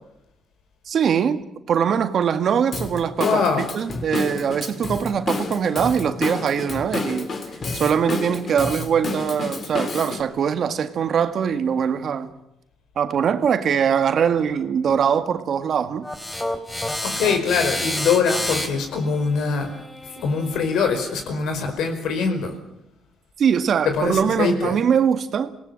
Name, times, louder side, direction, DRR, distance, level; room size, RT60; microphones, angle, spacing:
voice 1, 0.9-1.4 1.7-7.3 7.7-12.3 13.0-16.1 23.4-25.5, right 7 dB, 60° right, 1.8 m, -22 dB
Drum kit / Drum, 2.7-10.2, left 3 dB, 45° left, 3.3 m, -30 dB
voice 2, 3.2-3.6 16.9-19.7 20.2-22.5 23.8-24.8, left 5 dB, 80° left, 5.2 m, -23 dB
sound 1, 16.0-21.2, left 1 dB, 15° left, 3.4 m, -30 dB
27.0 x 18.0 x 7.7 m
cardioid pair, 90°, 0 cm